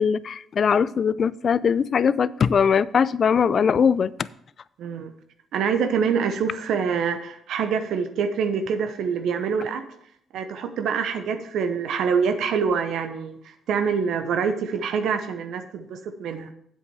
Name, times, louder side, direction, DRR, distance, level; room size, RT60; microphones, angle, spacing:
voice 1, 0.0-4.1, left 6 dB, 50° left, 18 dB, 0.4 m, -21 dB
voice 2, 4.8-5.1 5.5-9.8 10.3-16.5, right 6 dB, 75° right, 8 dB, 0.8 m, -25 dB
8.3 x 7.7 x 4.7 m, 0.69 s
cardioid pair, 90°, 0 cm